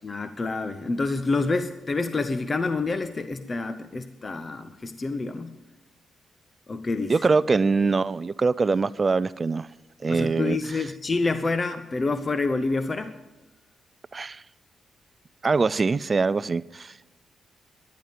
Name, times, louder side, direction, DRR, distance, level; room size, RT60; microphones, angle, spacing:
voice 1, 0.0-5.6 6.7-7.1 10.1-13.1, left 3 dB, 35° left, 0.9 m, -28 dB
voice 2, 7.1-9.7 10.0-10.6 14.1-14.4 15.4-17.0, right 4 dB, 35° right, 0.4 m, -23 dB
14.5 x 10.5 x 7.4 m
cardioid pair, 70°, 0 cm